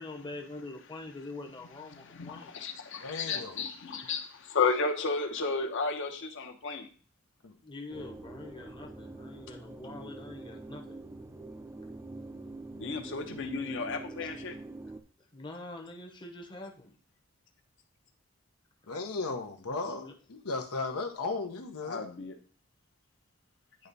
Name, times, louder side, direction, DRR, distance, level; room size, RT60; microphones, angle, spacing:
voice 1, 0.0-2.6 7.6-11.1 14.2-14.3 15.3-16.9 19.8-20.1, left 2 dB, 20° left, 2 dB, 0.8 m, -44 dB
voice 2, 1.9-6.9 12.7-14.5 21.8-22.3, left 4 dB, 60° left, 5 dB, 0.8 m, -33 dB
voice 3, 3.0-3.6 7.4-7.5 18.9-22.1, left 3 dB, 90° left, 6 dB, 0.8 m, -36 dB
sound 1, 7.9-15.0, right 2 dB, 10° right, 0.4 m, -45 dB
9.6 x 3.4 x 4.0 m, 0.42 s
head